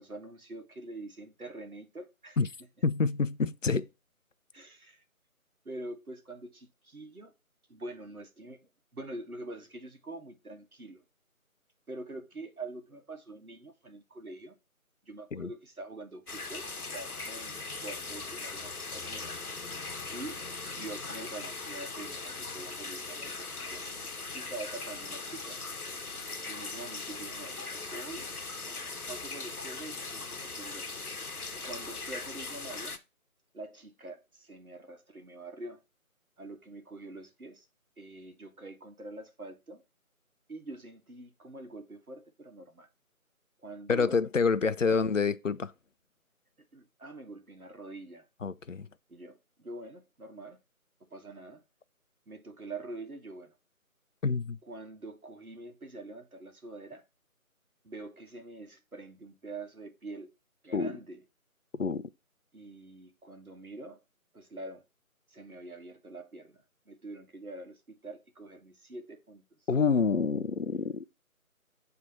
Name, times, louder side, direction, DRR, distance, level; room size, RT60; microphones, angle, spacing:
voice 1, 0.0-2.4 4.5-5.0 5.6-7.3 7.7-11.0 11.9-14.5 15.0-19.5 20.1-20.4 20.8-23.8 24.3-25.6 26.5-28.3 28.6-30.9 31.6-33.0 33.5-35.8 36.4-37.7 38.0-39.8 40.5-42.9 43.6-44.2 44.6-44.7 46.7-48.2 49.1-50.6 51.1-51.6 52.3-53.5 54.6-57.0 57.8-60.3 60.6-61.2 62.5-64.0 64.3-64.8 65.3-69.7, right 2 dB, 80° right, 1.5 m, -45 dB
voice 2, 2.8-3.9 15.3-15.5 43.9-45.7 48.4-48.9 54.2-54.6 60.7-60.9 61.8-62.0 69.7-71.0, left 5 dB, 60° left, 0.5 m, -27 dB
sound 1, 16.3-33.0, left 3 dB, 85° left, 1.0 m, -40 dB
7.9 x 3.4 x 4.3 m
figure-of-eight pair, 170°, 43 cm